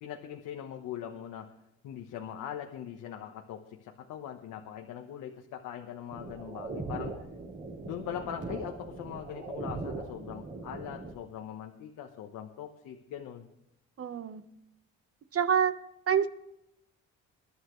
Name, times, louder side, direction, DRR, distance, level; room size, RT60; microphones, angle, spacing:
voice 1, 0.0-1.5 1.8-7.2 7.8-13.5, left 9 dB, 90° left, 3 dB, 1.2 m, -41 dB
sound 1, 6.1-11.1, right 3 dB, 65° right, 4.9 m, -40 dB
voice 2, 14.0-14.4 15.3-15.8 16.1-16.3, right 8 dB, 50° right, 11 dB, 1.2 m, -26 dB
23.0 x 11.0 x 3.2 m, 0.83 s
cardioid pair, 90°, 30 cm